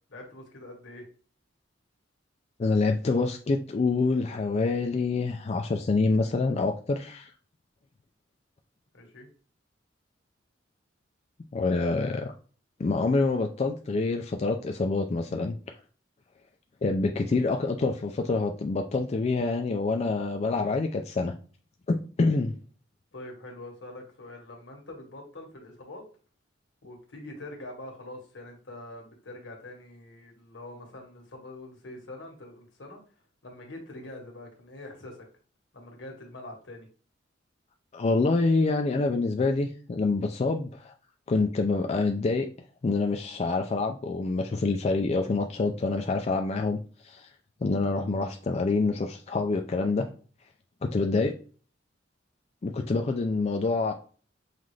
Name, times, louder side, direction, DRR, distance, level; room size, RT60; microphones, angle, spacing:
voice 1, 0.1-1.0 8.9-9.3 23.1-26.0 26.8-33.0 33.4-35.2 35.7-36.9, left 1 dB, 80° left, 1 dB, 1.5 m, -44 dB
voice 2, 2.6-7.3 11.5-12.3 12.8-15.6 16.8-21.3 21.9-22.5 37.9-40.9 41.3-42.5 42.8-47.3 47.6-50.1 50.8-51.4 52.6-53.9, left 3 dB, 35° left, 4 dB, 0.4 m, -26 dB
5.6 x 2.5 x 3.2 m, 0.40 s
head